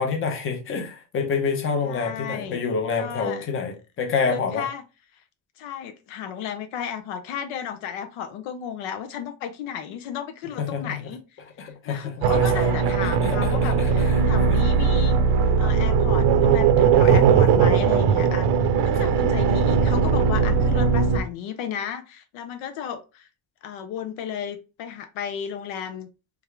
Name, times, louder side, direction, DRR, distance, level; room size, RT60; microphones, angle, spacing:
voice 1, 0.0-4.6 10.6-11.0 11.6-12.6 13.0-13.9 14.5-14.6 17.0-17.6, left 5 dB, 25° left, 0.7 m, -28 dB
voice 2, 1.8-2.6 3.0-3.5 4.3-4.8 5.6-11.2 11.8-15.2 15.6-18.5 18.8-23.3 23.6-26.1, left 8 dB, 75° left, 0.7 m, -34 dB
sound 1, 12.2-21.2, right 6 dB, 55° right, 0.6 m, -19 dB
3.5 x 3.5 x 3.2 m
cardioid pair, 170°, 49 cm